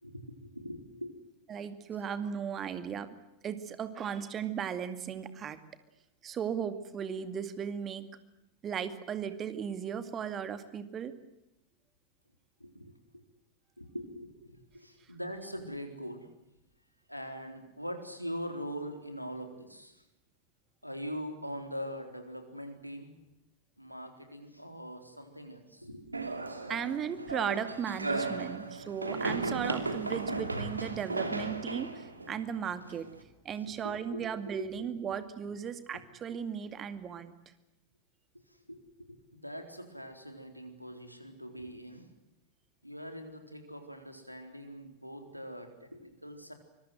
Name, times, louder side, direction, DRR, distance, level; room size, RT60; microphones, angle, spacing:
voice 1, 0.0-1.1 12.6-13.2 13.8-16.3 17.1-20.0 20.8-23.1 23.8-26.2 33.8-34.3 34.6-34.7 38.7-38.8 39.1-42.1 42.8-46.5, equal, 90° left, 5 dB, 4.0 m, -42 dB
voice 2, 1.5-3.1 3.4-5.6 6.2-8.1 8.6-11.1 26.7-33.1 33.4-37.3, right 8 dB, 25° right, 11 dB, 2.3 m, -36 dB
sound 1, 26.1-33.2, right 3 dB, 80° right, 2.8 m, -36 dB
25.0 x 23.0 x 7.9 m, 0.93 s
figure-of-eight pair, 90°, 0 cm